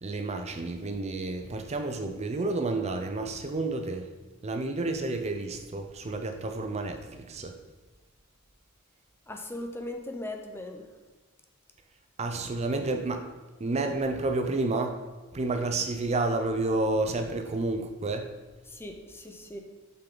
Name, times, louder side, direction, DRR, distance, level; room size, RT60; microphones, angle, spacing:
voice 1, 0.0-4.1 4.4-7.6 12.2-13.3 13.6-15.0 15.3-18.3, right 2 dB, 30° right, 6 dB, 0.5 m, -30 dB
voice 2, 9.3-10.9 18.7-19.6, left 1 dB, 10° left, 4 dB, 0.6 m, -39 dB
7.2 x 5.8 x 3.8 m, 1.2 s
head